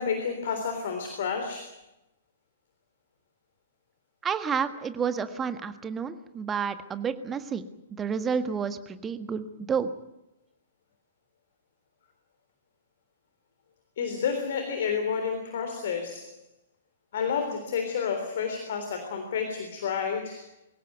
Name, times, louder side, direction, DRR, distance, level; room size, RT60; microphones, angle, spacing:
voice 1, 0.0-1.7 14.0-16.4 17.1-20.4, left 6 dB, 50° left, 6 dB, 3.5 m, -30 dB
voice 2, 4.2-7.6 7.9-9.9, right 6 dB, 15° right, 10 dB, 1.5 m, -30 dB
24.0 x 17.0 x 9.3 m, 0.90 s
figure-of-eight pair, 110°, 0 cm